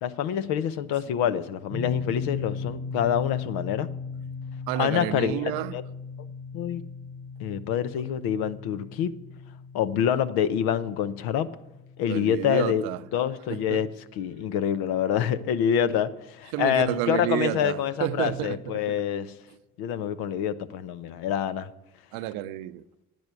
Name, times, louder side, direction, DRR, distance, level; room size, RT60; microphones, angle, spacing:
voice 1, 0.0-3.9 4.8-5.4 5.7-5.8 6.5-6.8 7.4-9.1 9.7-11.5 12.0-12.8 13.1-13.9 14.2-19.3 19.8-21.7, left 9 dB, 75° left, 0.8 m, -26 dB
sound 1, 1.7-14.6, left 4 dB, 35° left, 2.4 m, -38 dB
voice 2, 4.7-5.8 12.1-13.0 13.5-13.8 16.5-19.0 22.1-22.8, right 14 dB, 75° right, 0.6 m, -30 dB
10.5 x 9.2 x 8.1 m
hypercardioid pair, 50°, 38 cm